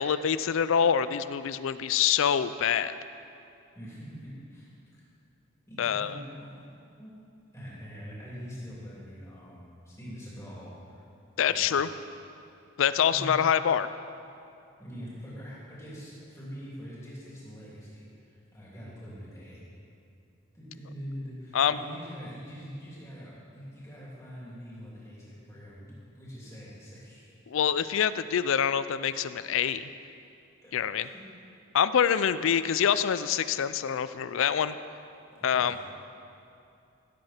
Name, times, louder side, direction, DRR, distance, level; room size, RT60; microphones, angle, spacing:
voice 1, 0.0-3.0 5.8-6.2 11.4-11.9 12.8-13.9 21.5-21.8 27.5-29.9 30.7-31.1 31.7-34.8 35.4-35.9, left 8 dB, 65° left, 14 dB, 0.4 m, -25 dB
voice 2, 3.7-5.0 5.7-6.7 7.0-7.1 7.5-11.0 11.5-11.7 13.1-13.4 14.8-19.6 20.5-27.3 30.6-31.2 32.2-32.3 35.5-35.9, equal, 15° left, -8 dB, 3.0 m, -44 dB
16.0 x 7.9 x 4.4 m, 2.6 s
head